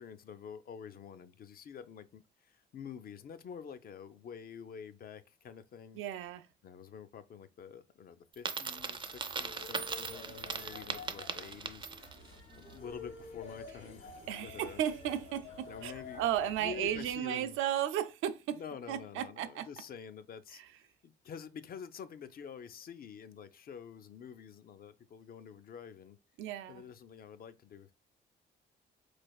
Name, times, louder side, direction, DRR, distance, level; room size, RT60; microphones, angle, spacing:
voice 1, 0.0-6.0 6.6-11.9 12.5-14.2 14.4-14.8 15.7-16.2 16.6-17.6 18.5-20.6 21.0-26.2 26.7-27.9, left 7 dB, 50° left, 0.5 m, -48 dB
voice 2, 6.0-6.5 14.3-18.6 18.9-19.7 26.4-26.8, right 11 dB, 85° right, 0.5 m, -34 dB
Coin (dropping), 8.3-12.3, right 5 dB, 25° right, 0.4 m, -39 dB
sound 1, 8.7-17.2, left 4 dB, 75° left, 1.7 m, -49 dB
4.1 x 3.2 x 2.3 m
cardioid pair, 90°, 20 cm